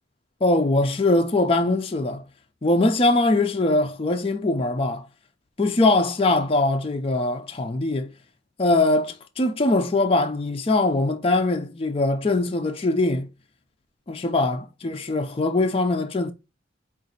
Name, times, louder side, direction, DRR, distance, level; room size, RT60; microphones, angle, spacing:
voice 1, 0.4-2.2 2.6-5.1 5.6-8.1 8.6-13.3 14.1-16.3, left 2 dB, 30° left, 0.4 m, -22 dB
4.9 x 2.5 x 3.9 m
head